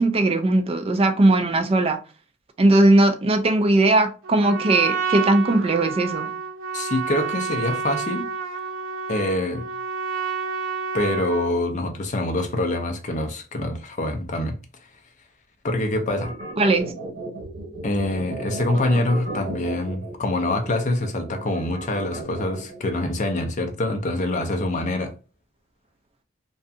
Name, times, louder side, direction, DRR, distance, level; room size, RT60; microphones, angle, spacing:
voice 1, 0.0-2.0 2.6-6.3 16.6-16.9, right 2 dB, 30° right, 0.3 m, -19 dB
Trumpet, 4.2-11.6, right 5 dB, 90° right, 0.6 m, -29 dB
voice 2, 6.7-8.3 9.1-9.7 10.9-14.6 15.6-16.4 17.8-25.1, left 1 dB, 40° left, 0.5 m, -25 dB
sound 1, 16.1-22.8, right 2 dB, 70° right, 1.2 m, -35 dB
2.6 x 2.3 x 2.4 m
head